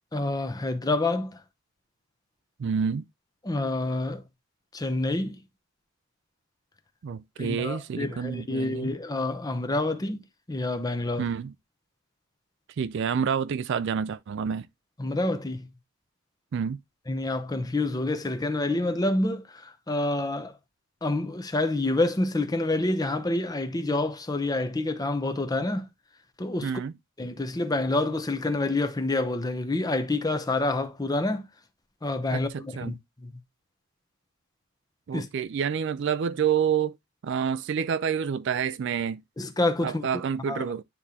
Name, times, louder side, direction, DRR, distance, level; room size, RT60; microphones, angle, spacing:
voice 1, 0.1-1.4 3.4-4.2 4.7-5.4 7.4-10.2 10.5-11.3 15.0-15.7 17.1-20.6 21.0-25.9 26.4-26.7 27.2-31.5 32.0-33.3 35.1-35.3 39.4-40.2 40.5-40.6, left 2 dB, 15° left, 0.6 m, -28 dB
voice 2, 2.6-3.1 7.0-8.9 11.2-11.5 12.8-14.7 16.5-16.8 26.6-26.9 32.3-32.9 35.1-37.0 37.2-39.2 39.8-40.8, right 7 dB, 55° right, 0.3 m, -28 dB
9.7 x 3.7 x 2.7 m
head